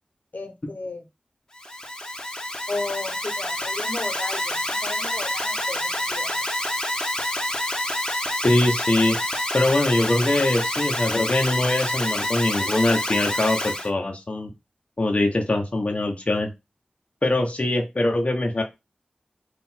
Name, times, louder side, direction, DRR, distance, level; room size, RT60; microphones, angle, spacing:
voice 1, 0.3-1.0 2.7-6.3, left 3 dB, 70° left, 5 dB, 0.9 m, -34 dB
Alarm, 1.5-13.9, left 1 dB, 25° left, 1.0 m, -27 dB
voice 2, 8.4-9.2 9.5-14.5 15.0-16.5 17.2-18.6, left 2 dB, 45° left, 2 dB, 0.8 m, -22 dB
3.8 x 2.5 x 4.3 m, 0.23 s
wide cardioid pair, 50°, 3 cm